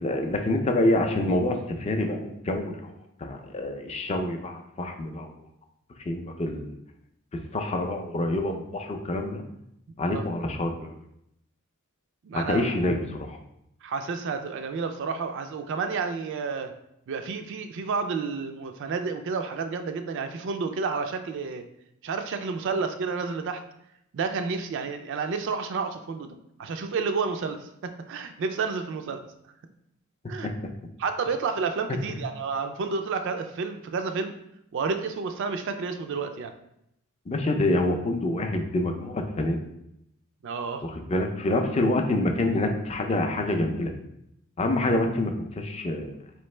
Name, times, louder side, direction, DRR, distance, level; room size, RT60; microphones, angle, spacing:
voice 1, 0.0-2.9 3.2-5.3 6.1-6.7 7.5-9.4 10.0-10.9 12.3-13.4 30.4-30.5 37.3-39.6 40.8-43.9 44.6-46.1, left 1 dB, 30° left, 5 dB, 0.4 m, -26 dB
voice 2, 12.2-12.8 13.8-16.7 17.1-21.6 22.0-23.6 24.1-29.2 30.3-30.5 31.0-34.3 34.7-36.5 40.4-40.8, right 5 dB, 55° right, 7 dB, 0.3 m, -30 dB
4.2 x 3.1 x 3.2 m, 0.80 s
head